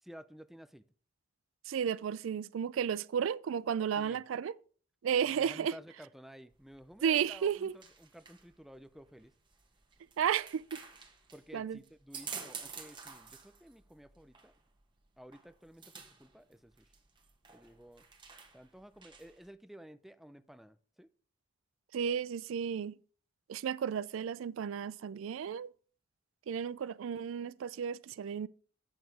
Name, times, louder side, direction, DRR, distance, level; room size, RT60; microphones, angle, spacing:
voice 1, 0.0-0.8 4.0-4.2 5.2-9.3 11.3-14.5 15.2-16.9 17.5-18.0 18.5-21.1, equal, ahead, 0.4 m, -53 dB
voice 2, 1.7-4.6 5.0-5.7 7.0-7.7 10.2-10.8 11.5-11.8 21.9-23.0 23.5-25.7 26.5-28.5, right 8 dB, 75° right, 0.3 m, -33 dB
sound 1, 6.5-19.5, right 5 dB, 25° right, 1.2 m, -51 dB
8.8 x 6.3 x 4.6 m
head